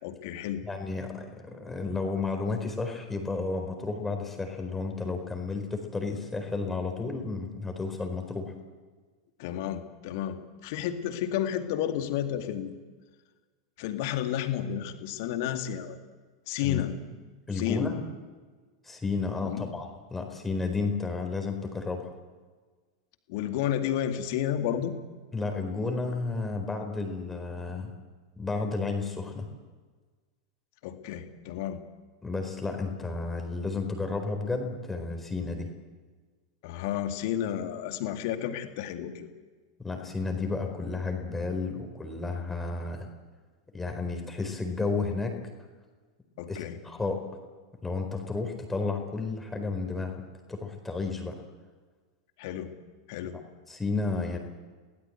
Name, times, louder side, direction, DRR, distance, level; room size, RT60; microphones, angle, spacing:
voice 1, 0.0-0.6 9.4-12.7 13.8-16.0 16.5-16.9 17.6-18.0 19.4-19.6 23.3-24.9 30.8-31.8 36.6-39.3 46.4-46.8 52.4-52.7 53.1-53.4, left 10 dB, 50° left, 7 dB, 2.2 m, -31 dB
voice 2, 0.7-8.5 16.6-16.8 17.5-18.0 18.8-22.1 25.3-27.9 28.4-29.5 32.2-35.7 39.8-43.1 43.7-45.4 46.5-47.2 47.8-50.1 50.5-51.3 53.7-54.4, left 3 dB, 10° left, 4 dB, 4.4 m, -32 dB
29.0 x 18.5 x 8.1 m, 1.4 s
figure-of-eight pair, 90°, 2 cm